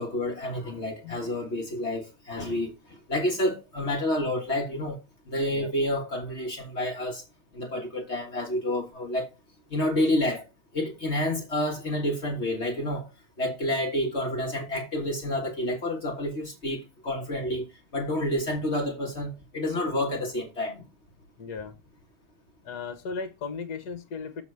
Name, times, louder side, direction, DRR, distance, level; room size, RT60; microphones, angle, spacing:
voice 1, 0.0-5.0 5.3-7.2 7.5-9.3 9.7-10.5 10.7-13.1 13.4-17.7 17.9-20.8, left 1 dB, 35° left, 1.5 m, -29 dB
voice 2, 21.4-21.8 22.6-24.4, left 4 dB, 55° left, 1.7 m, -36 dB
7.1 x 4.0 x 6.4 m
omnidirectional pair, 2.3 m